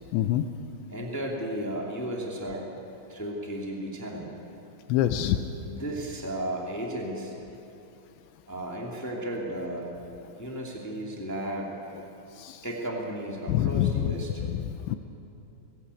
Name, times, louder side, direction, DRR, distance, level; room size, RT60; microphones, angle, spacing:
voice 1, 0.1-0.4 4.9-5.4 12.4-12.6 13.5-14.1 14.7-15.0, left 12 dB, 80° left, 8 dB, 2.9 m, -25 dB
voice 2, 0.9-2.7 3.1-4.3 5.7-7.3 8.5-9.9 10.4-11.7 12.6-14.4, right 1 dB, 10° left, -2 dB, 0.7 m, -34 dB
21.5 x 16.5 x 8.4 m, 2.9 s
omnidirectional pair, 5.3 m